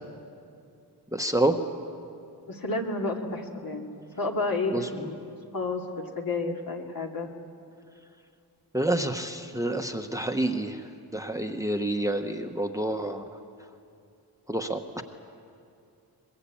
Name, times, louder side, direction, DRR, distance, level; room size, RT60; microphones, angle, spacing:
voice 1, 1.1-1.6 4.7-4.9 8.7-10.8 11.1-13.2 14.5-15.0, right 1 dB, 10° right, 6 dB, 1.0 m, -28 dB
voice 2, 2.5-3.9 4.2-5.3 5.5-7.3, left 2 dB, 60° left, 1 dB, 2.6 m, -31 dB
23.5 x 21.5 x 8.5 m, 2.5 s
wide cardioid pair, 115°, 39 cm